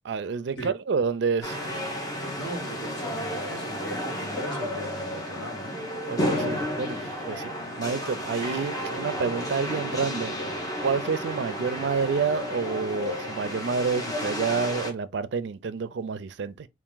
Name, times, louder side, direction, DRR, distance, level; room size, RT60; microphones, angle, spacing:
voice 1, 0.0-1.7 6.1-7.5 7.8-10.4 10.8-16.7, right 5 dB, 70° right, 0.4 m, -29 dB
sound 1, 1.4-14.9, equal, 20° left, 0.8 m, -32 dB
voice 2, 2.4-5.8, right 1 dB, 70° left, 1.4 m, -38 dB
3.5 x 2.5 x 3.8 m
head